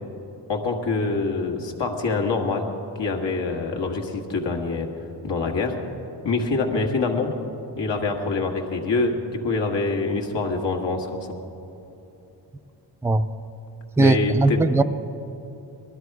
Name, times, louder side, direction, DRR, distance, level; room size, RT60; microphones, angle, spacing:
voice 1, 0.5-2.7 3.0-4.9 5.2-5.8 6.2-7.3 7.8-11.3 14.0-14.7, left 3 dB, 80° left, 1 dB, 1.8 m, -25 dB
voice 2, 14.0-14.8, right 2 dB, 5° right, 9 dB, 0.4 m, -18 dB
20.0 x 12.5 x 4.7 m, 2.9 s
cardioid pair, 90°, 43 cm